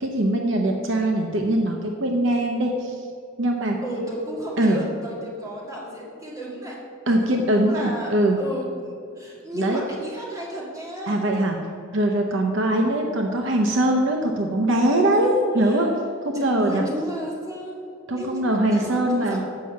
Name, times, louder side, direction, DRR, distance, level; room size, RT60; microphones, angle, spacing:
voice 1, 0.0-3.1 3.4-3.8 4.6-4.8 7.1-8.4 9.5-9.8 11.1-11.6 11.9-15.9 16.2-16.8 18.1-19.4, right 1 dB, 60° right, 2 dB, 0.8 m, -22 dB
voice 2, 3.8-6.8 7.1-8.1 8.4-11.2 15.1-15.9 16.3-19.4, right 1 dB, 15° right, -5 dB, 2.0 m, -33 dB
7.6 x 5.7 x 7.5 m, 2.4 s
head